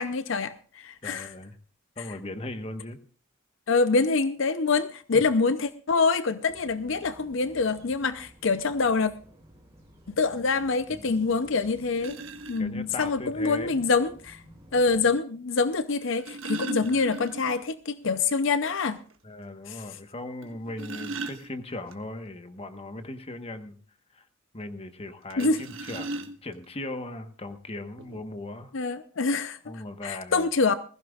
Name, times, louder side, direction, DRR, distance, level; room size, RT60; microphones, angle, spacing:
voice 1, 0.0-1.3 3.7-9.1 10.1-12.2 12.5-14.4 14.7-19.0 19.7-19.8 25.4-25.6 28.7-29.6 30.0-30.7, left 4 dB, 65° left, 11 dB, 0.6 m, -25 dB
voice 2, 1.0-1.5 2.0-3.0 5.1-5.2 10.9-11.3 12.6-13.8 16.9-17.0 19.2-23.8 24.1-24.3 24.5-28.7 29.6-30.5, left 2 dB, 30° left, 8 dB, 1.2 m, -38 dB
sound 1, 6.5-15.1, equal, 15° right, 7.7 m, -53 dB
sound 2, 11.3-11.4 12.0-12.6 14.0-14.1 15.9-17.6 18.0-18.1 18.5-18.6 19.1-19.2 20.4-21.9 25.3-26.6 27.5-27.6 28.0-28.2, right 2 dB, 75° right, 1.5 m, -37 dB
20.5 x 15.5 x 2.4 m, 0.41 s
head